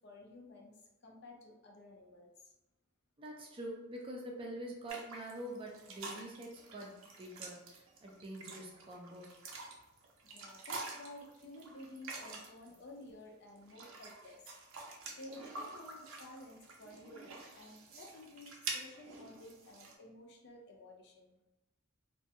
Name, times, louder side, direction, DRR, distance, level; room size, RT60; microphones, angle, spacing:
voice 1, 0.0-2.3 10.3-14.4 15.2-21.4, left 1 dB, 55° left, 1 dB, 0.4 m, -53 dB
voice 2, 3.2-9.3, right 1 dB, 25° right, -1 dB, 0.4 m, -46 dB
sound 1, 4.9-12.8 13.5-20.0, right 3 dB, 85° right, 0.5 m, -47 dB
2.4 x 2.2 x 2.7 m, 0.96 s
head